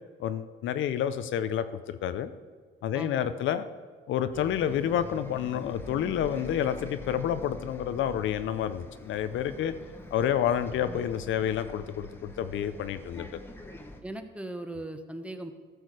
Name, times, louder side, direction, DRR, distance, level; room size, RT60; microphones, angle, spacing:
voice 1, 0.2-2.3 2.8-3.7 4.1-9.7 10.1-13.3, left 9 dB, 75° left, 11 dB, 0.6 m, -29 dB
voice 2, 2.9-3.3 10.8-11.0 14.0-15.5, right 1 dB, 5° right, 7 dB, 1.0 m, -39 dB
Bus, 4.3-14.0, left 1 dB, 10° left, 1.2 m, -45 dB
13.5 x 6.4 x 4.9 m, 1.5 s
cardioid pair, 90°, 20 cm